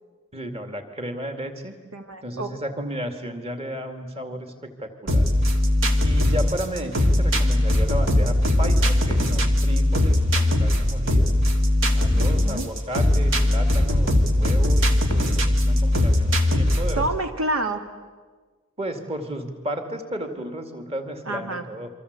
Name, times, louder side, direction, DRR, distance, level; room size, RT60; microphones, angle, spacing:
voice 1, 0.3-1.7 2.2-5.3 6.0-11.4 11.9-17.1 18.8-21.9, equal, 30° right, 6 dB, 2.5 m, -33 dB
voice 2, 1.9-2.5 12.2-12.7 17.0-17.8 21.3-21.7, right 2 dB, 80° right, 7 dB, 1.9 m, -28 dB
sound 1, 5.1-17.1, left 1 dB, 65° right, 2.6 m, -20 dB
28.5 x 24.5 x 8.3 m, 1.4 s
head